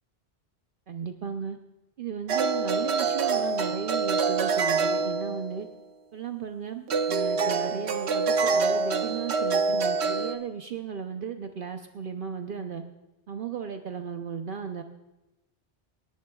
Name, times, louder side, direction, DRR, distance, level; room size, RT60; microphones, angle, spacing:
voice 1, 0.9-1.6 2.0-5.7 6.1-12.8 13.3-14.8, right 7 dB, 60° right, 5 dB, 0.8 m, -35 dB
sound 1, 2.3-5.7 6.9-10.3, right 4 dB, 75° right, 1.0 m, -26 dB
27.5 x 10.5 x 2.3 m, 1.0 s
omnidirectional pair, 1.1 m